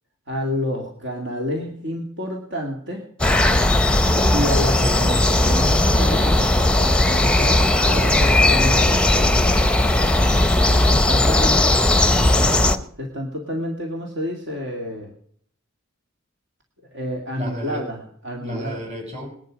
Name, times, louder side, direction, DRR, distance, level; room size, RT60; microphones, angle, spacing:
voice 1, 0.3-3.1 4.3-9.4 10.8-11.6 12.3-15.1 16.9-18.8, equal, 60° right, 1 dB, 2.2 m, -29 dB
sound 1, 3.2-12.8, left 1 dB, 5° left, 0.8 m, -17 dB
voice 2, 11.1-12.4 17.3-17.9 18.4-19.3, equal, 35° right, 2 dB, 6.4 m, -32 dB
20.0 x 11.0 x 5.1 m, 0.63 s
head